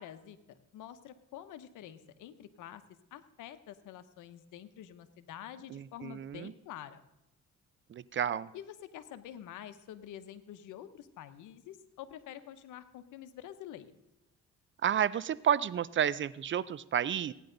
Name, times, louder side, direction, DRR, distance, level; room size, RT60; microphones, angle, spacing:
voice 1, 0.0-2.8 3.1-7.0 8.5-14.0, left 11 dB, 85° left, 12 dB, 0.9 m, -48 dB
voice 2, 5.7-6.5 7.9-8.5 14.8-17.3, right 9 dB, 40° right, 19 dB, 0.4 m, -31 dB
16.5 x 10.0 x 3.9 m, 0.92 s
cardioid pair, 90°, 30 cm